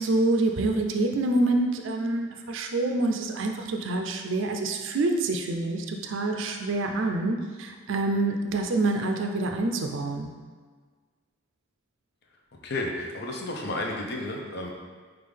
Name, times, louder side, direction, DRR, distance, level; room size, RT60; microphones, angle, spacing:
voice 1, 0.0-10.3, right 2 dB, 70° right, 3 dB, 0.4 m, -26 dB
voice 2, 12.6-14.7, left 2 dB, 55° left, 0 dB, 0.6 m, -32 dB
5.3 x 2.4 x 3.3 m, 1.5 s
head